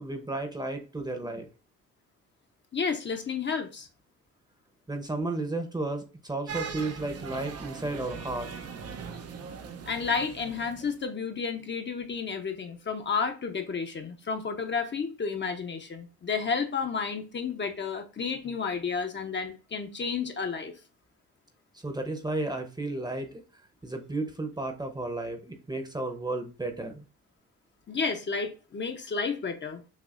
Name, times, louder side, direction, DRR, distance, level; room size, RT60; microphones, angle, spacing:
voice 1, 0.0-1.5 4.9-8.5 21.7-23.4 23.8-27.0, right 2 dB, 15° right, 0.9 m, -33 dB
voice 2, 2.7-3.9 9.9-20.7 27.9-29.8, left 5 dB, 40° left, 0.9 m, -31 dB
sound 1, 6.5-11.0, right 5 dB, 55° right, 0.8 m, -40 dB
6.5 x 2.7 x 2.5 m
cardioid pair, 90°, 30 cm